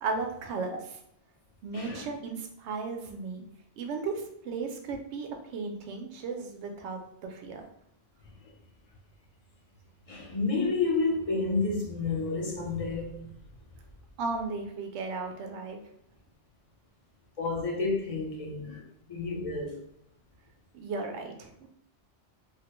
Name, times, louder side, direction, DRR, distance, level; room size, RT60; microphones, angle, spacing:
voice 1, 0.0-0.8 1.6-3.4 3.8-7.6 14.2-15.8 20.7-21.7, right 4 dB, 80° right, 3 dB, 0.8 m, -35 dB
voice 2, 1.7-2.1 8.4-8.5 10.1-13.3 17.4-18.8 19.1-19.8, left 3 dB, 40° left, -1 dB, 0.6 m, -30 dB
3.2 x 2.1 x 2.9 m, 0.71 s
omnidirectional pair, 1.2 m